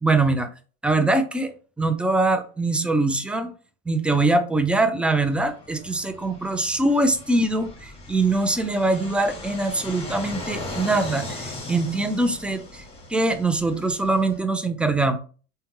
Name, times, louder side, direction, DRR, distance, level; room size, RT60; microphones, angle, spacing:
voice 1, 0.0-0.5 0.8-3.5 3.9-12.8 13.1-15.2, right 2 dB, 5° right, 8 dB, 0.4 m, -23 dB
Fixed-wing aircraft airplane, 5.1-14.4, left 2 dB, 15° left, 1.1 m, -38 dB
3.4 x 2.2 x 3.0 m, 0.38 s
supercardioid pair, 95°, 32 cm